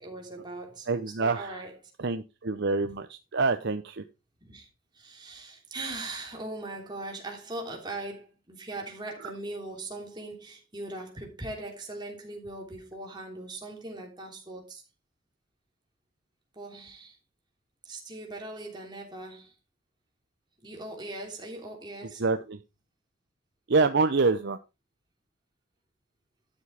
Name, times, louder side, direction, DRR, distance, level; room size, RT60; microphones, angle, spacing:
voice 1, 0.0-1.9 2.8-2.9 4.4-4.7 4.9-14.8 16.5-17.2 17.8-19.5 20.6-22.2, right 2 dB, 20° right, 3.1 m, -40 dB
voice 2, 0.9-1.5 2.0-4.0 22.2-22.6 23.7-24.6, right 4 dB, 55° right, 0.7 m, -26 dB
12.0 x 7.5 x 3.4 m
head